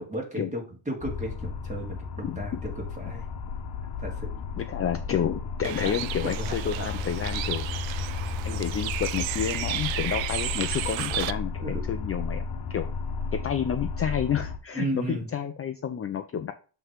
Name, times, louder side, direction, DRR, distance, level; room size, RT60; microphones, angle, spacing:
voice 1, 0.0-3.2 4.0-4.3 5.8-5.9 6.2-6.9 8.5-8.6 11.6-11.8 14.7-15.3, right 1 dB, 15° right, -1 dB, 2.6 m, -34 dB
sound 1, 1.0-14.6, left 5 dB, 55° left, 1.1 m, -33 dB
voice 2, 4.6-7.7 8.4-12.4 12.7-12.9 13.3-16.5, left 8 dB, 30° left, 8 dB, 0.5 m, -30 dB
Bird, 5.6-11.3, right 14 dB, 75° right, 0.6 m, -33 dB
7.6 x 3.4 x 4.7 m, 0.37 s
cardioid pair, 110°, 46 cm